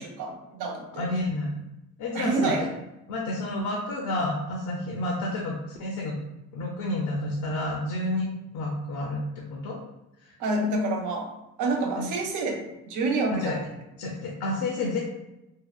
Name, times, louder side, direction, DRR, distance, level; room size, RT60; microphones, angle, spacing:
voice 1, 0.0-1.0 2.1-2.7 10.4-11.3 11.6-13.6, right 2 dB, 85° right, 2 dB, 0.6 m, -28 dB
voice 2, 0.9-1.6 2.0-2.7 3.1-6.2 6.5-8.3 8.5-9.8 10.2-10.3 12.0-12.1 13.3-13.6 14.0-15.0, left 2 dB, 85° left, -1 dB, 0.5 m, -30 dB
2.7 x 2.0 x 2.3 m, 0.94 s
cardioid pair, 90°, 30 cm